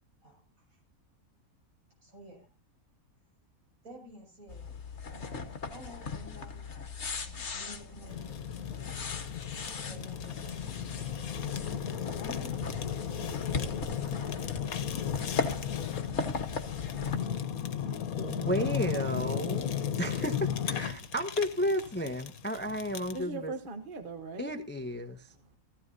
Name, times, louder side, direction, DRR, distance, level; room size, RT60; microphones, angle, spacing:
voice 1, 0.2-0.8 2.0-2.5 3.8-6.7 7.1-8.4 9.7-11.5 11.9-14.6, equal, 70° right, 0 dB, 7.1 m, -51 dB
sound 1, 4.5-17.2, left 4 dB, 55° left, 1.6 m, -38 dB
Fire, 8.1-23.2, left 8 dB, 80° left, 1.4 m, -35 dB
voice 2, 18.2-19.7 20.0-23.5 24.4-25.3, equal, 10° left, 7 dB, 0.8 m, -33 dB
voice 3, 23.1-24.5 25.0-25.6, right 3 dB, 40° right, 8 dB, 1.1 m, -41 dB
15.5 x 15.0 x 2.7 m, 0.28 s
omnidirectional pair, 1.5 m